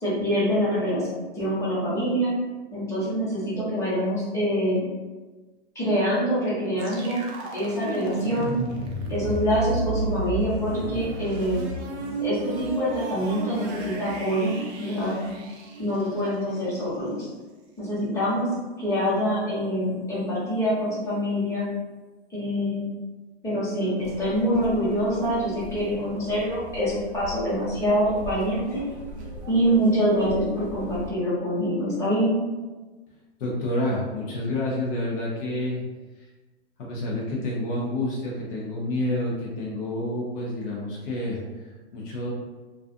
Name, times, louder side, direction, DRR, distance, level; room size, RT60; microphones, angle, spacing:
voice 1, 0.0-1.1 1.3-2.3 2.7-4.8 5.7-7.2 7.5-8.6 9.1-11.6 12.2-15.3 15.8-17.3 17.8-18.5 18.8-21.6 22.3-22.9 23.4-28.8 29.5-32.3, equal, 10° left, -10 dB, 1.0 m, -25 dB
sound 1, 6.8-16.6, right 3 dB, 30° right, 0.4 m, -33 dB
sound 2, 24.0-31.1, equal, 80° right, 0.8 m, -40 dB
voice 2, 33.4-35.8 36.1-36.3 36.8-42.3, left 1 dB, 55° left, -4 dB, 0.7 m, -29 dB
2.4 x 2.4 x 2.5 m, 1.2 s
hypercardioid pair, 130°, 32 cm